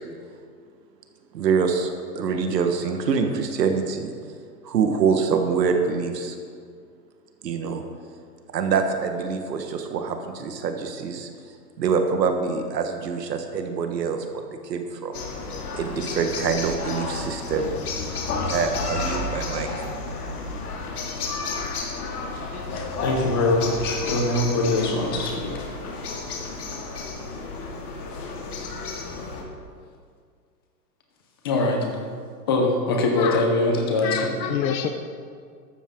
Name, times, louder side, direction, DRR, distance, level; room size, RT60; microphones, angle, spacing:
voice 1, 1.3-4.1 4.6-6.4 7.4-7.8 8.5-11.3 11.8-15.2 15.7-17.7 18.5-19.7, right 5 dB, 75° right, 5 dB, 1.5 m, -25 dB
sound 1, 15.1-29.4, left 3 dB, 60° left, 2.8 m, -31 dB
voice 2, 22.7-25.5 31.4-31.9 32.5-34.4, left 2 dB, 15° left, 1 dB, 0.8 m, -23 dB
voice 3, 34.0-34.9, left 9 dB, 85° left, 5 dB, 1.1 m, -27 dB
14.0 x 12.5 x 3.8 m, 2.1 s
hypercardioid pair, 180°, 50 cm